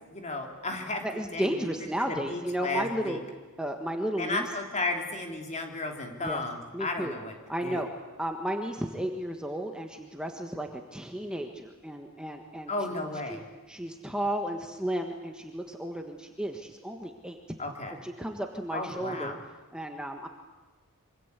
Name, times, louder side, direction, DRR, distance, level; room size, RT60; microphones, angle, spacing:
voice 1, 0.1-1.0 1.3-1.7 2.1-3.2 4.2-7.3 7.6-7.8 12.7-13.4 17.6-18.0 18.7-19.4, left 2 dB, 30° left, 3 dB, 3.5 m, -34 dB
voice 2, 1.0-3.2 3.6-4.5 6.2-6.4 6.7-7.1 7.5-7.9 8.2-12.7 13.3-13.4 13.7-17.4 18.0-19.4 19.7-20.3, right 1 dB, 5° right, 3 dB, 1.5 m, -33 dB
26.0 x 25.0 x 8.3 m, 1.3 s
head